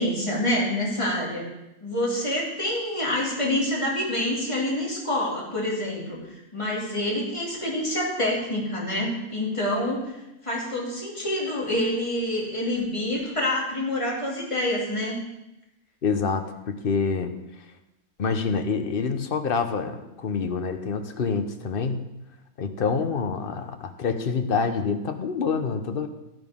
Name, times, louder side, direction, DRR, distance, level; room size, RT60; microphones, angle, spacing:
voice 1, 0.0-1.5 1.8-10.1 10.4-15.2, left 1 dB, 20° left, -4 dB, 2.7 m, -27 dB
voice 2, 16.0-17.3 18.2-22.1 22.6-26.1, left 5 dB, 45° left, 7 dB, 0.9 m, -26 dB
12.5 x 11.0 x 3.7 m, 0.92 s
omnidirectional pair, 1.7 m